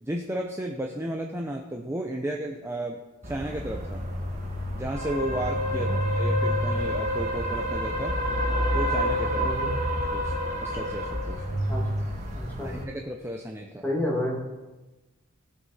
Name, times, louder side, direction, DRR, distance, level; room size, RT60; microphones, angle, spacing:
voice 1, 0.0-4.1 4.7-8.2 8.7-9.5 10.1-10.3 10.6-11.4 12.6-13.8, right 1 dB, 10° right, 2 dB, 0.5 m, -33 dB
sound 1, 3.2-12.8, equal, 30° right, 1.9 m, -28 dB
voice 2, 5.7-6.0 9.4-9.7 11.7-11.8 12.3-12.7 13.8-14.4, left 1 dB, 10° left, -3 dB, 2.0 m, -30 dB
16.0 x 6.3 x 4.1 m, 1.1 s
head